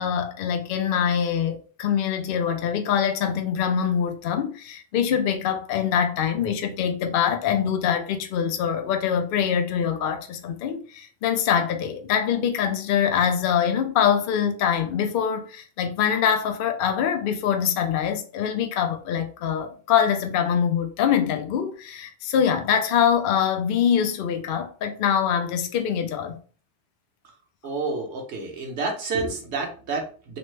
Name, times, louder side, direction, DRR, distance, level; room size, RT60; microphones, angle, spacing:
voice 1, 0.0-26.4, left 8 dB, 60° left, 0.6 m, -24 dB
voice 2, 27.6-30.4, right 3 dB, 60° right, 1.1 m, -29 dB
3.1 x 2.0 x 3.2 m
omnidirectional pair, 1.3 m